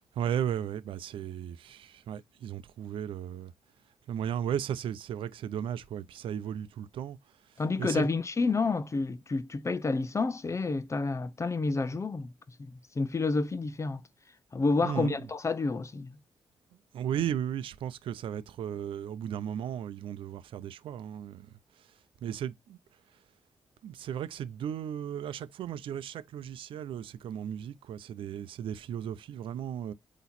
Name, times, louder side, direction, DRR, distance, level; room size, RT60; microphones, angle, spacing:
voice 1, 0.1-3.5 4.1-7.2 7.8-8.1 14.8-15.2 16.9-21.9 22.2-22.8 23.8-29.9, right 9 dB, 85° right, 0.6 m, -35 dB
voice 2, 7.6-12.3 12.6-14.0 14.5-16.2, left 3 dB, 35° left, 0.8 m, -29 dB
8.1 x 3.0 x 4.2 m
cardioid pair, 70°, 9 cm